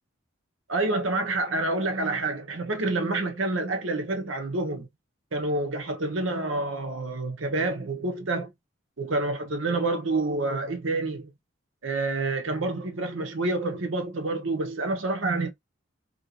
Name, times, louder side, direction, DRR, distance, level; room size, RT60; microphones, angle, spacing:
voice 1, 0.7-4.9 5.3-8.5 9.0-11.3 11.8-15.5, right 2 dB, 85° right, 0.9 m, -28 dB
2.9 x 2.7 x 2.8 m
head